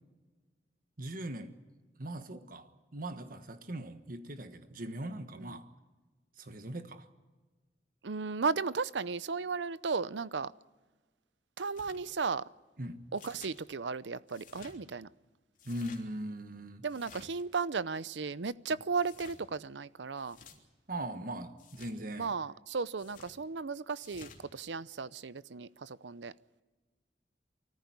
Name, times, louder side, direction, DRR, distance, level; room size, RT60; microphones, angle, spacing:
voice 1, 1.0-1.5 2.0-5.7 6.4-7.1 12.8-13.0 15.6-16.8 20.9-22.3, right 1 dB, 50° right, 1.4 m, -40 dB
voice 2, 8.0-10.5 11.6-12.4 13.1-15.1 16.8-20.4 22.2-26.3, right 4 dB, 80° right, 0.7 m, -35 dB
sound 1, 11.7-12.0 13.1-13.6 14.3-14.8 15.5-16.0 16.9-17.4 19.0-19.4 20.2-20.6 21.6-21.9 23.0-23.3 24.0-24.4, left 5 dB, 45° left, 3.2 m, -54 dB
25.0 x 14.5 x 9.6 m
head